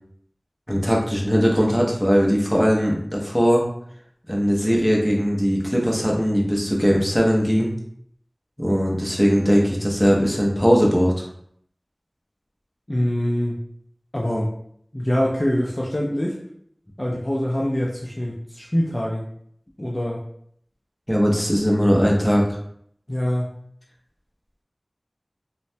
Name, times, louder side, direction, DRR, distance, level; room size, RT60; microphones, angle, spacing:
voice 1, 0.7-3.6 4.3-7.7 8.6-11.3 21.1-22.5, equal, 5° left, -2 dB, 0.7 m, -19 dB
voice 2, 12.9-13.5 14.1-14.5 14.9-16.4 17.0-19.3 19.8-20.2 23.1-23.5, equal, 30° left, -3 dB, 0.4 m, -24 dB
3.0 x 2.1 x 2.7 m, 0.66 s
wide cardioid pair, 45°, 0 cm